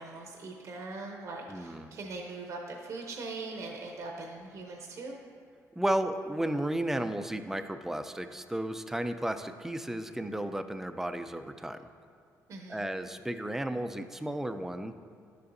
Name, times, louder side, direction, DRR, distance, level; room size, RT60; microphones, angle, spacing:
voice 1, 0.0-5.2 12.5-12.8, right 3 dB, 55° right, 1 dB, 0.7 m, -41 dB
voice 2, 1.5-1.9 5.8-11.9 12.7-14.9, right 1 dB, 5° right, 9 dB, 0.4 m, -33 dB
11.0 x 6.8 x 2.6 m, 2.4 s
cardioid pair, 95°, 6 cm